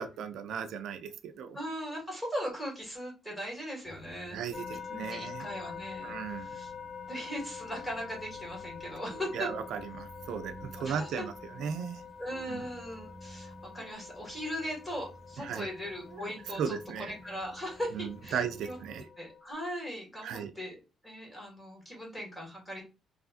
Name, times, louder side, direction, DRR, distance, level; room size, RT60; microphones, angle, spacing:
voice 1, 0.0-1.6 4.3-5.5 6.0-6.6 9.1-12.0 12.4-12.7 15.4-15.7 16.1-16.3 16.6-17.1 17.9-19.1 20.2-20.5, right 7 dB, 80° right, 8 dB, 0.3 m, -36 dB
voice 2, 1.5-4.4 4.9-6.1 6.4-6.7 7.1-9.5 10.8-11.3 12.2-18.8 19.2-20.8 21.0-22.8, equal, 5° left, -2 dB, 1.7 m, -39 dB
sound 1, 3.8-19.0, equal, 25° left, 1.3 m, -53 dB
sound 2, 4.5-19.5, left 6 dB, 45° left, 0.5 m, -46 dB
3.0 x 2.4 x 2.4 m, 0.30 s
cardioid pair, 90°, 0 cm